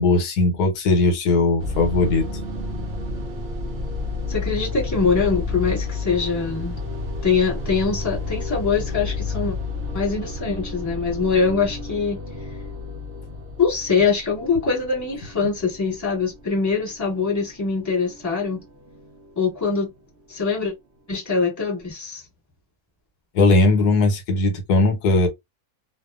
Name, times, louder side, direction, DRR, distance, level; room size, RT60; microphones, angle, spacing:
voice 1, 0.0-2.3 23.3-25.3, left 2 dB, 85° left, 1.3 m, -18 dB
sound 1, 1.6-19.9, left 3 dB, 65° right, 0.6 m, -31 dB
voice 2, 4.3-6.8 7.2-9.6 9.9-12.2 13.6-18.6 19.4-19.9 20.3-20.7 21.1-22.2, left 5 dB, 10° left, 1.2 m, -23 dB
2.5 x 2.3 x 2.3 m
omnidirectional pair, 1.6 m